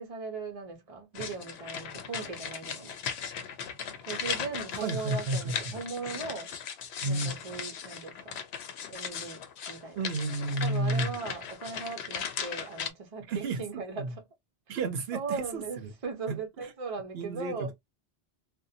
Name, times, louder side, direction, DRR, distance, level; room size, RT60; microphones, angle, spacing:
voice 1, 0.0-3.0 4.1-6.5 7.0-8.4 8.9-9.4 9.7-10.0 10.6-14.2 15.1-17.7, right 4 dB, 40° right, 0.7 m, -38 dB
sound 1, 1.2-12.9, left 7 dB, 80° left, 0.8 m, -38 dB
voice 2, 4.8-5.7 7.0-7.3 10.0-11.1 13.3-14.1 14.7-15.9 16.3-16.7 17.1-17.7, right 2 dB, 70° right, 0.8 m, -32 dB
2.5 x 2.2 x 2.6 m
omnidirectional pair, 1.1 m